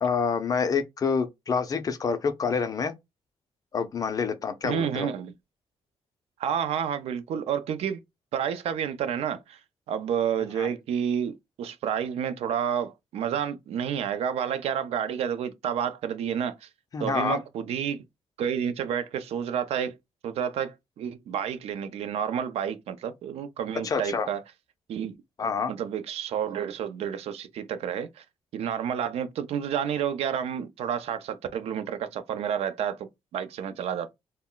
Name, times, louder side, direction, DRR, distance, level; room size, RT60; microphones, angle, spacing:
voice 1, 0.0-2.9 3.7-5.1 10.6-10.7 16.9-17.4 23.8-24.3 25.4-25.7, left 5 dB, 35° left, 0.4 m, -27 dB
voice 2, 4.6-5.3 6.4-8.0 8.3-9.6 9.9-16.7 17.0-18.0 18.4-20.0 20.2-24.4 24.9-25.1 25.7-28.2 28.5-34.1, right 8 dB, 70° right, 0.4 m, -30 dB
2.2 x 2.1 x 3.7 m
cardioid pair, 145°, 11 cm